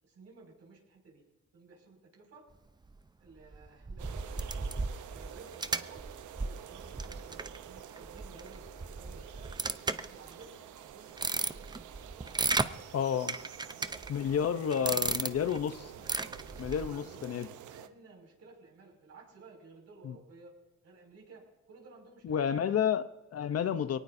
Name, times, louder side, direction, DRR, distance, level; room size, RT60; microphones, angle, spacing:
voice 1, 0.0-1.2 1.5-2.4 3.2-4.7 5.0-6.0 6.3-9.6 9.8-11.7 12.0-13.1 13.3-14.0 14.4-16.1 16.7-20.5 20.8-22.8, right 3 dB, 55° right, 0 dB, 6.1 m, -55 dB
sound 1, 3.5-10.4 10.9-12.7 13.3-14.4 14.7-15.6 16.0-16.9, right 3 dB, 15° right, 0.6 m, -35 dB
sound 2, 4.0-17.9, right 10 dB, 75° right, 0.9 m, -49 dB
voice 2, 12.9-13.4 14.1-15.7 16.6-17.5 20.0-20.1 22.2-24.0, left 8 dB, 55° left, 11 dB, 0.8 m, -30 dB
22.5 x 18.5 x 2.7 m, 1.1 s
cardioid pair, 90°, 30 cm